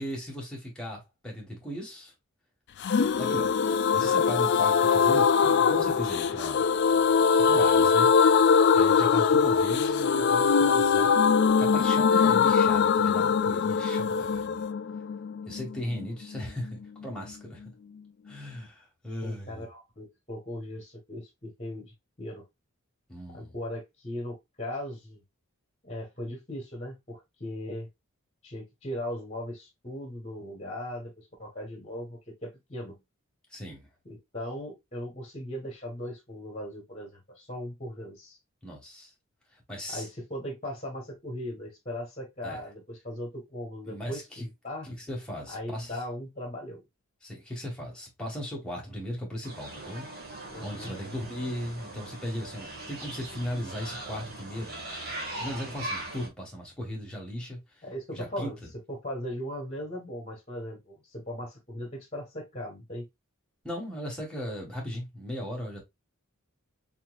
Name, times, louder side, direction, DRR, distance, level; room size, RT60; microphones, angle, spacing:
voice 1, 0.0-2.1 3.2-3.5 3.9-6.7 7.5-8.1 8.7-11.1 11.6-14.7 15.5-17.6 18.3-19.6 23.1-23.5 33.5-33.9 38.6-39.1 39.7-40.1 42.4-42.6 43.9-44.5 44.8-46.0 47.2-50.1 50.6-54.8 55.4-57.6 58.1-58.7 63.6-65.8, equal, 5° left, 1.7 m, -37 dB
sound 1, 2.8-16.4 16.7-16.8 17.0-17.1, left 6 dB, 50° left, 0.3 m, -22 dB
voice 2, 19.2-22.4 23.3-25.2 25.8-27.9 28.4-33.0 34.0-38.4 39.9-44.9 45.5-46.8 50.5-50.9 57.8-58.6 58.9-63.1, left 1 dB, 30° left, 1.5 m, -38 dB
sound 2, 49.4-56.3, right 1 dB, 45° right, 1.6 m, -40 dB
4.3 x 3.8 x 2.4 m
head